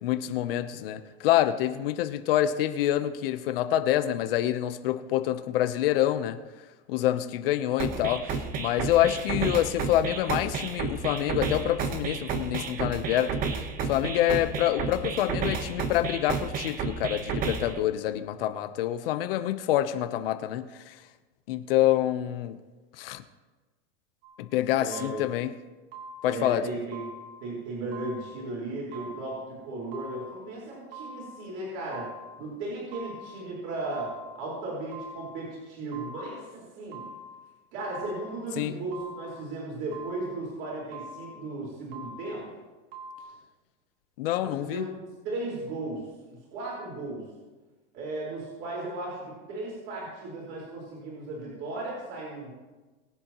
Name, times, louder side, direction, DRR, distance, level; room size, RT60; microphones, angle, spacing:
voice 1, 0.0-6.4 6.9-13.4 13.8-21.0 21.5-22.6 23.0-23.2 24.4-25.5 26.2-26.6 38.6-38.7 44.2-44.8, left 12 dB, 70° left, 10 dB, 0.9 m, -26 dB
sound 1, 7.8-17.8, right 5 dB, 30° right, 1.0 m, -32 dB
sound 2, 24.2-24.5 24.9-25.5 25.9-26.5 26.9-27.5 27.9-28.5 28.9-29.5 29.9-30.5 30.9-31.5 31.9-32.5 32.9-33.5 33.9-34.5 34.9-35.5 35.9-36.5 36.9-37.5 37.9-38.5 38.9-39.5 39.9-40.5 40.9-41.5 41.9-42.5 42.9-43.2, right 1 dB, 65° right, 3.1 m, -44 dB
voice 2, 24.8-25.2 26.2-27.0 27.4-32.1 32.4-34.1 34.4-37.0 37.7-42.4 43.3-43.4 44.4-46.1 46.5-47.2 47.9-52.5, right 2 dB, 50° right, -5 dB, 4.6 m, -36 dB
22.5 x 8.3 x 3.0 m, 1.2 s
supercardioid pair, 155°, 29 cm